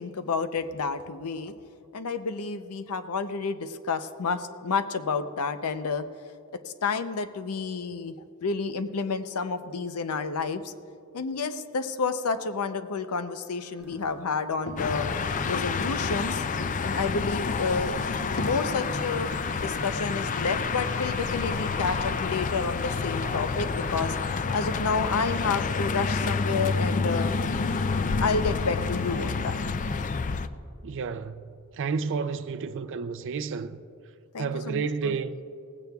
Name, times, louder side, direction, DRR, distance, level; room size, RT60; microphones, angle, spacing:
voice 1, 0.0-1.5 1.9-6.1 6.5-10.7 11.1-15.1 15.5-16.4 16.8-18.1 18.3-19.3 19.6-24.2 24.5-27.3 28.0-29.6 34.3-35.2, left 4 dB, 80° left, 0.6 m, -30 dB
sound 1, 13.1-30.5, right 2 dB, 10° right, 1.4 m, -49 dB
sound 2, 13.8-19.4, left 1 dB, 50° left, 0.9 m, -42 dB
sound 3, 14.8-30.5, left 4 dB, 35° left, 0.4 m, -29 dB
voice 2, 30.8-31.4 31.7-33.8 34.4-35.4, right 5 dB, 60° right, 0.4 m, -31 dB
18.5 x 16.0 x 2.3 m
head